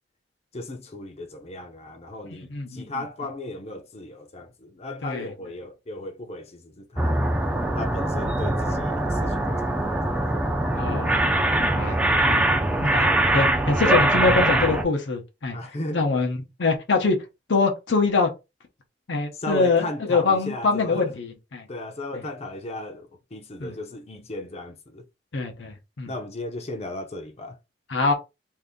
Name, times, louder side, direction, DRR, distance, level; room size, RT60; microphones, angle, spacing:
voice 1, 0.5-7.2 7.7-10.5 15.5-16.0 19.3-21.2 21.7-25.0 26.1-27.6, left 1 dB, 35° left, 0.6 m, -36 dB
voice 2, 2.5-2.8 5.0-5.3 10.8-12.5 12.8-15.6 15.9-17.2 17.5-18.3 19.1-21.7 23.6-23.7 25.3-26.1 27.9-28.1, left 4 dB, 80° left, 0.8 m, -24 dB
sound 1, 7.0-14.8, right 1 dB, 5° right, 0.5 m, -22 dB
2.7 x 2.6 x 3.6 m
head